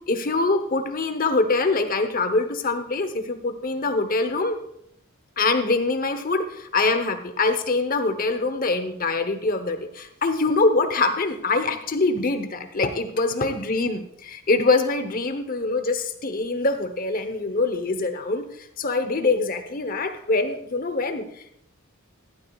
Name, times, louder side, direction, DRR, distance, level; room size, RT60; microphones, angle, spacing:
voice 1, 0.1-4.6 5.4-18.4 18.8-21.2, left 3 dB, 40° left, 8 dB, 0.9 m, -24 dB
14.5 x 12.0 x 2.4 m, 0.73 s
head